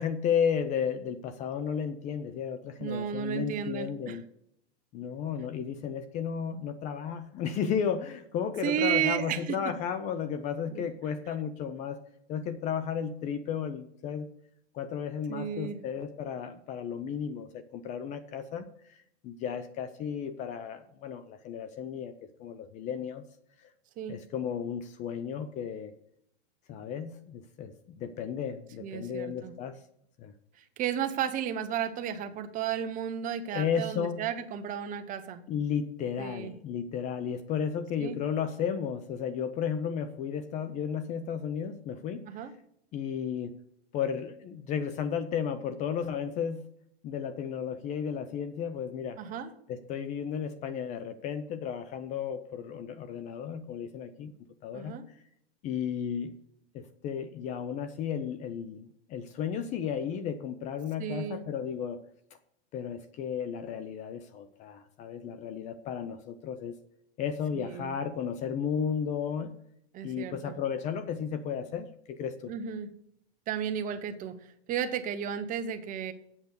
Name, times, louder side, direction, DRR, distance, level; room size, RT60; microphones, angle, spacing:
voice 1, 0.0-4.2 4.9-12.0 12.3-14.3 14.7-18.7 19.2-23.2 23.6-23.7 24.1-25.9 26.7-29.8 30.2-30.3 33.5-34.3 35.5-42.3 42.9-43.6 43.9-46.6 47.0-49.2 49.7-54.3 54.6-55.0 55.6-56.3 56.7-62.0 62.7-66.8 67.2-69.5 70.0-72.5, left 7 dB, 25° left, 12 dB, 0.5 m, -33 dB
voice 2, 2.8-4.2 8.6-9.6 10.7-10.8 15.3-15.8 24.0-24.2 28.8-29.5 30.8-35.4 36.2-36.5 38.0-38.2 42.3-42.5 49.2-49.5 54.7-55.1 61.0-61.4 67.5-67.9 69.9-70.5 72.5-72.9 73.5-74.4 74.7-76.1, right 9 dB, 25° right, 9 dB, 0.9 m, -33 dB
8.3 x 6.8 x 6.6 m, 0.74 s
supercardioid pair, 145°, 33 cm